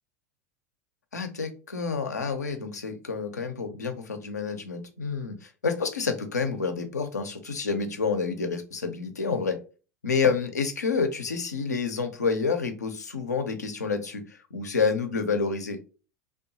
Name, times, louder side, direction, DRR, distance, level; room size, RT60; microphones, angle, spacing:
voice 1, 1.1-9.6 10.0-15.8, left 5 dB, 85° left, 7 dB, 0.5 m, -29 dB
2.8 x 2.2 x 2.6 m, 0.34 s
figure-of-eight pair, 80°, 9 cm